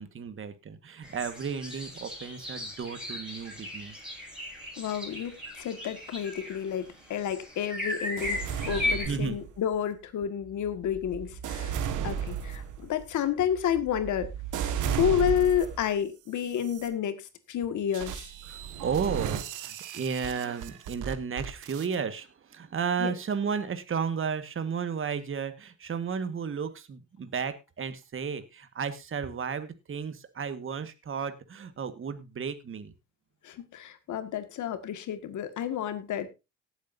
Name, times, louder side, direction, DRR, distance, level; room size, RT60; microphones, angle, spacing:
voice 1, 0.0-4.0 8.8-9.4 11.8-12.1 18.5-32.9, right 6 dB, 45° right, 10 dB, 1.7 m, -33 dB
sound 1, 1.0-9.1, left 1 dB, ahead, 7.4 m, -36 dB
voice 2, 4.8-11.8 12.0-14.3 14.9-18.3 23.0-23.1 33.4-36.3, left 9 dB, 75° left, 11 dB, 1.9 m, -30 dB
sound 2, 8.2-9.7 10.4-15.9 16.5-16.9 17.9-22.0, right 8 dB, 85° right, 1.7 m, -35 dB
18.5 x 8.2 x 2.7 m, 0.26 s
cardioid pair, 90°, 30 cm